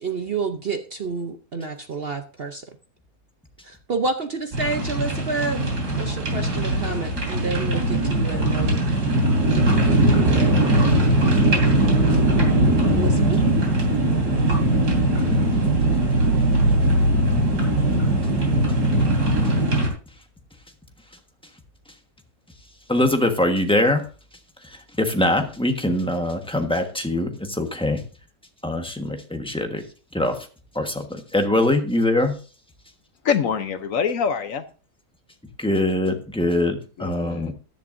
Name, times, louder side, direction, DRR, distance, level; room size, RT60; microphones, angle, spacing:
voice 1, 0.0-2.6 3.6-5.6 6.0-8.8 12.9-13.4, right 4 dB, 50° right, 7 dB, 0.8 m, -29 dB
sound 1, 4.5-19.9, right 1 dB, 85° right, 3.6 m, -20 dB
voice 2, 22.9-24.0 25.0-28.0 28.6-29.8 30.1-30.4 30.7-32.4 35.6-37.5, left 1 dB, 5° left, 4 dB, 1.1 m, -22 dB
voice 3, 33.2-34.6 37.0-37.5, left 7 dB, 65° left, 11 dB, 1.0 m, -24 dB
14.5 x 10.5 x 2.6 m, 0.36 s
omnidirectional pair, 1.7 m